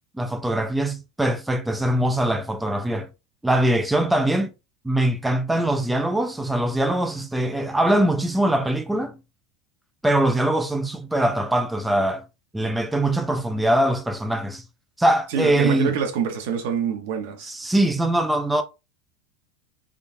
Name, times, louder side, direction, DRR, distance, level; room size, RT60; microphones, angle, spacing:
voice 1, 0.1-3.1 3.4-4.5 4.8-9.1 10.0-12.2 12.5-14.6 15.0-15.9 17.4-18.6, right 1 dB, 5° right, 0.3 m, -22 dB
voice 2, 15.3-17.5, right 6 dB, 70° right, 1.0 m, -26 dB
3.8 x 2.4 x 2.6 m
supercardioid pair, 145°, 0 cm